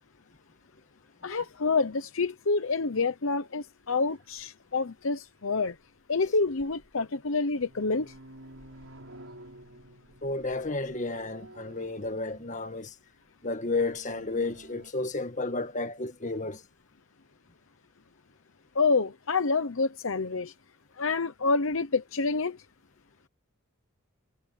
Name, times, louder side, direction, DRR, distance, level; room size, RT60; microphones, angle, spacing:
voice 1, 1.2-5.8 6.1-8.1 18.7-20.5 21.0-22.6, left 4 dB, 65° left, 0.9 m, -27 dB
sound 1, 4.4-4.5 6.2-6.9 7.3-12.8 13.6-14.9, right 1 dB, 65° right, 6.4 m, -51 dB
voice 2, 10.2-12.9 13.4-16.6, left 3 dB, 35° left, 1.6 m, -32 dB
head